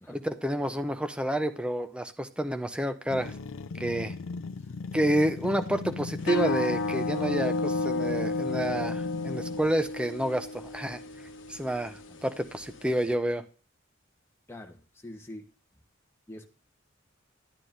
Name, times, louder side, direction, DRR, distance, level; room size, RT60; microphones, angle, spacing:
voice 1, 0.1-3.3 3.8-4.1 4.9-11.0 11.5-13.4, right 1 dB, 5° right, 9 dB, 0.6 m, -29 dB
sound 1, 3.1-9.9, left 3 dB, 90° left, 0.5 m, -37 dB
sound 2, 6.2-13.1, left 2 dB, 70° left, 1.1 m, -33 dB
voice 2, 14.5-15.5 16.3-16.5, left 1 dB, 10° left, 3 dB, 1.1 m, -45 dB
11.5 x 9.6 x 2.6 m, 0.37 s
head